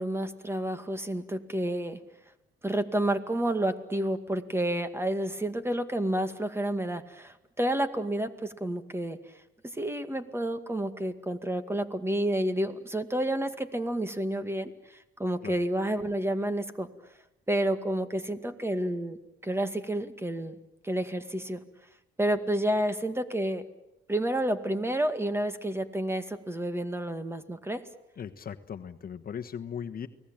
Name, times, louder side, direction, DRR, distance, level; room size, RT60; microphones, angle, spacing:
voice 1, 0.0-2.0 2.6-9.2 9.7-16.9 17.5-19.2 19.4-20.6 20.8-21.6 22.2-23.7 24.1-27.8, right 1 dB, 10° right, 10 dB, 2.1 m, -30 dB
voice 2, 28.2-30.1, left 8 dB, 50° left, 7 dB, 1.3 m, -38 dB
29.5 x 19.5 x 8.9 m, 0.92 s
cardioid pair, 90°, 20 cm